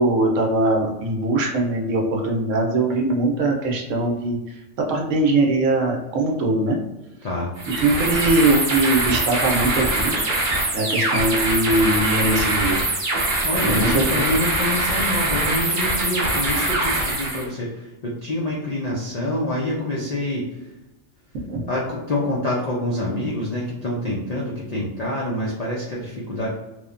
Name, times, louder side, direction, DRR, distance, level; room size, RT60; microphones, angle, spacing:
voice 1, 0.0-6.8 7.7-10.1 10.7-12.8 13.6-14.2 21.5-21.7, right 2 dB, 75° right, 1 dB, 1.0 m, -21 dB
sound 1, 7.6-17.5, right 2 dB, 50° right, 0.7 m, -23 dB
voice 2, 13.4-20.7 21.7-26.5, left 1 dB, 70° left, -4 dB, 0.3 m, -26 dB
3.0 x 2.1 x 2.4 m, 1.0 s
omnidirectional pair, 1.3 m